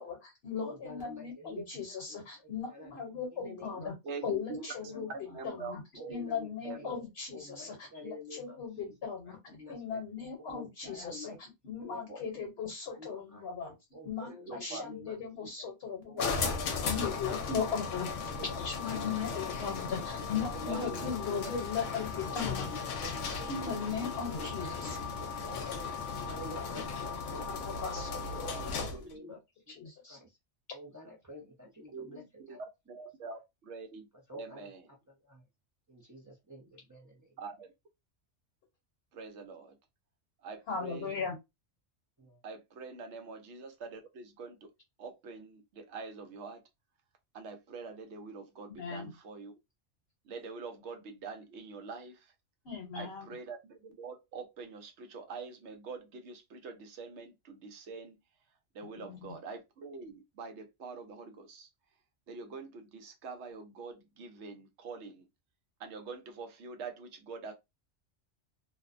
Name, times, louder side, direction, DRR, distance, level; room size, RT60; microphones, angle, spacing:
voice 1, 0.0-3.9 4.2-5.1 5.4-5.8 6.1-11.3 11.6-13.7 14.0-16.5 16.8-18.1 18.4-22.7 23.5-25.0 27.4-28.5 28.8-28.9 29.8-30.2 40.7-41.3 48.7-49.1 52.6-53.3 59.0-59.3, left 6 dB, 65° left, 1.0 m, -38 dB
voice 2, 0.6-1.6 2.1-2.9 3.3-3.9 4.6-5.0 5.3-5.4 6.0-7.0 7.3-8.6 8.9-9.0 9.2-10.0 10.4-11.4 11.7-12.2 12.8-13.5 13.9-15.7 16.1-17.1 17.4-17.6 18.2-19.5 20.2-21.1 22.2-23.9 24.3-25.9 26.2-26.9 27.3-27.8 28.3-29.4 29.7-29.8 30.1-30.4 30.7-32.6 34.3-34.7 35.1-35.4 35.9-37.4 42.2-42.4, left 1 dB, 25° right, 0.4 m, -48 dB
voice 3, 4.0-6.3 6.6-6.8 14.2-14.8 20.7-21.4 28.5-29.3 31.9-32.6 32.9-34.1 34.3-34.9 37.4-37.7 39.1-39.8 40.4-41.2 42.4-44.7 45.0-46.6 47.3-49.5 50.2-52.3 53.0-58.1 58.7-61.7 62.3-65.3 65.8-67.5, right 4 dB, 75° right, 1.0 m, -45 dB
sound 1, 16.2-29.1, left 5 dB, 85° left, 0.9 m, -36 dB
2.5 x 2.1 x 2.4 m
omnidirectional pair, 1.2 m